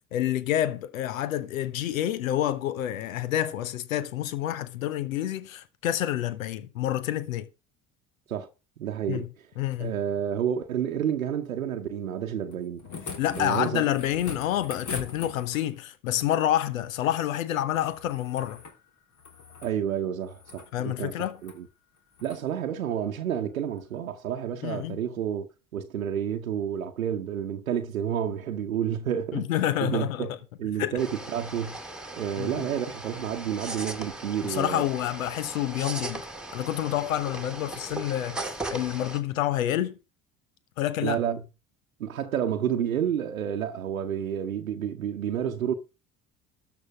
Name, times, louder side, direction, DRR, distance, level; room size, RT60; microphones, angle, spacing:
voice 1, 0.1-7.5 9.1-9.3 9.6-10.0 13.2-18.6 20.7-21.4 24.6-25.0 29.3-30.3 30.8-30.9 32.4-32.7 34.4-36.2 36.5-40.0 40.8-41.2, left 12 dB, 80° left, 1.0 m, -28 dB
voice 2, 8.8-9.3 9.8-12.9 13.4-13.8 19.6-21.1 21.4-21.6 22.2-29.5 29.8-30.3 30.6-31.8 32.1-34.8 41.0-41.4 42.0-45.7, right 9 dB, 85° right, 0.9 m, -30 dB
sound 1, 12.5-15.8 17.7-18.8 19.1-19.7 20.3-20.7 21.4-21.6 22.1-22.4 23.8-23.9, left 5 dB, 45° left, 3.3 m, -41 dB
sound 2, 31.0-39.2, right 2 dB, ahead, 2.3 m, -38 dB
13.0 x 5.7 x 7.1 m
figure-of-eight pair, 55°, 40 cm